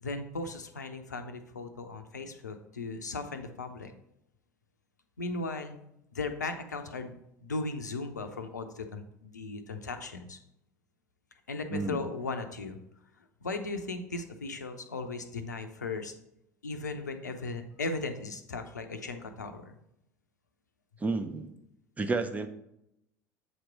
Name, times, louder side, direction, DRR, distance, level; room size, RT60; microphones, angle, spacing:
voice 1, 0.0-3.9 5.2-5.8 6.1-7.2 7.4-10.4 11.5-12.8 13.4-16.1 16.6-19.8, left 3 dB, 80° left, 7 dB, 0.6 m, -37 dB
voice 2, 11.7-12.0 21.0-21.5 22.0-22.5, right 3 dB, 15° right, 7 dB, 0.7 m, -31 dB
7.9 x 3.0 x 4.6 m, 0.82 s
figure-of-eight pair, 70°, 9 cm